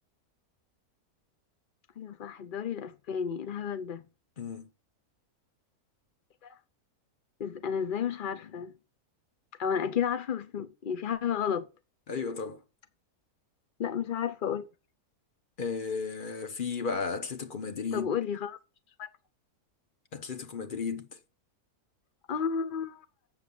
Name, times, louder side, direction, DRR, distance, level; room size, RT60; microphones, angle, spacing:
voice 1, 2.0-4.0 6.4-6.6 7.4-8.7 9.6-11.7 13.8-14.7 17.9-18.6 19.0-19.1 22.3-23.0, left 7 dB, 55° left, 0.6 m, -32 dB
voice 2, 4.4-4.7 12.1-12.6 15.6-18.1 20.1-21.2, left 5 dB, 40° left, 1.0 m, -34 dB
7.8 x 7.4 x 6.8 m
omnidirectional pair, 1.6 m